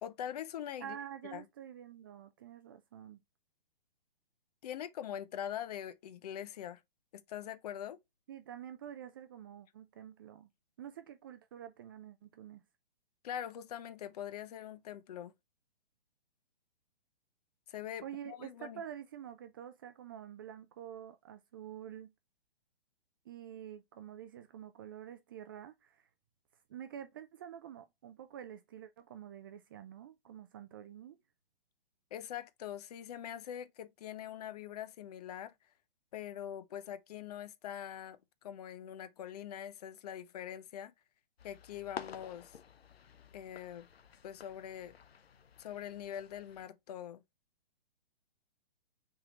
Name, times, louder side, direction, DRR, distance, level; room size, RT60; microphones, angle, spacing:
voice 1, 0.0-1.0 1.3-1.4 4.6-6.8 7.1-8.0 13.2-15.3 17.7-18.8 32.1-35.5 36.1-40.9 41.4-42.6 43.3-43.9 44.2-44.9 45.6-47.2, left 10 dB, 40° left, 0.6 m, -43 dB
voice 2, 0.8-3.2 8.3-10.5 10.8-12.6 18.0-22.1 23.3-26.1 26.7-31.2, right 10 dB, 25° right, 0.3 m, -48 dB
sound 1, 41.4-46.7, left 7 dB, 90° left, 0.7 m, -51 dB
5.7 x 3.7 x 2.3 m
hypercardioid pair, 135°, 30 cm